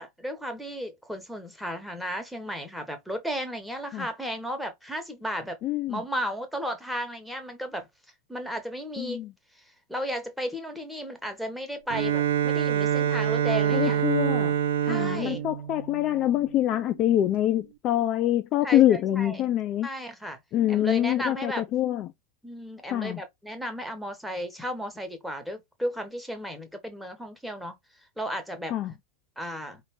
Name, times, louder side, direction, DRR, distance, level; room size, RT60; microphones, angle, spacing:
voice 1, 0.0-5.6 5.9-7.9 8.3-9.2 9.9-14.0 14.8-15.4 18.6-19.4 19.8-20.4 20.7-21.7 22.4-27.7 28.2-28.7 29.4-29.8, equal, ahead, 1.4 m, -34 dB
voice 2, 5.6-6.0 9.0-9.3 13.7-14.5 14.9-19.9 20.5-22.1 22.9-23.2 28.7-28.9, left 12 dB, 35° left, 0.5 m, -25 dB
Bowed string instrument, 11.9-16.7, right 9 dB, 55° right, 0.6 m, -26 dB
5.0 x 3.2 x 3.1 m
figure-of-eight pair, 90°, 0 cm